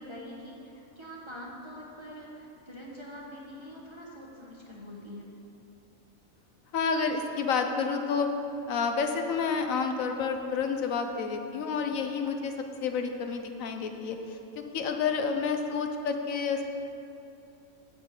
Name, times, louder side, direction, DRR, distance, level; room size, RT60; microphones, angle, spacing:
voice 1, 0.0-5.3, equal, 25° right, -3 dB, 0.9 m, -44 dB
voice 2, 6.7-8.3 8.7-12.5 12.8-16.6, left 5 dB, 75° left, 5 dB, 1.1 m, -29 dB
7.9 x 5.5 x 6.8 m, 2.8 s
omnidirectional pair, 1.4 m